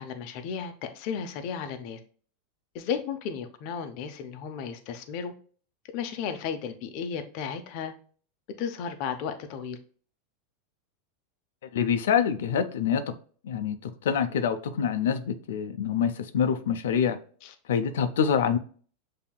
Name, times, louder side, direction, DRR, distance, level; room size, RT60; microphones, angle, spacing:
voice 1, 0.0-2.0 2.7-5.3 5.9-7.9 8.6-9.8 17.4-17.5, left 7 dB, 40° left, 0.6 m, -34 dB
voice 2, 11.7-13.2 13.4-17.2 17.7-18.6, left 7 dB, 90° left, 0.5 m, -26 dB
7.1 x 2.8 x 2.2 m
supercardioid pair, 175°, 0 cm